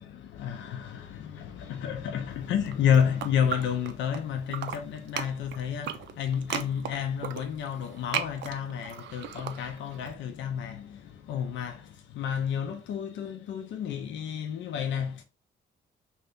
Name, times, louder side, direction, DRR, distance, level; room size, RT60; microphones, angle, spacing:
voice 1, 0.1-15.2, left 8 dB, 70° left, 0.5 m, -30 dB
sound 1, 2.5-4.2 4.5-10.1, right 9 dB, 65° right, 0.5 m, -36 dB
2.7 x 2.7 x 3.4 m
cardioid pair, 90°, 20 cm